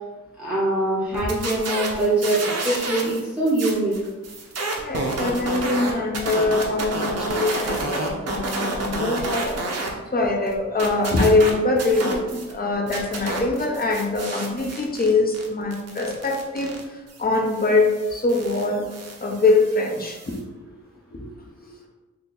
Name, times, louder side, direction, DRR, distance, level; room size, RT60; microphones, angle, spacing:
voice 1, 0.4-3.9, right 2 dB, 5° right, -7 dB, 0.8 m, -23 dB
sound 1, 1.1-3.2 3.5-9.9 10.2-12.5 12.9-20.4, right 2 dB, 60° right, 0.7 m, -30 dB
voice 2, 4.8-18.9 19.2-20.4 21.1-21.3 21.6-21.7, left 2 dB, 30° left, 0 dB, 0.7 m, -23 dB
2.8 x 2.7 x 3.9 m, 1.2 s
wide cardioid pair, 110°, 29 cm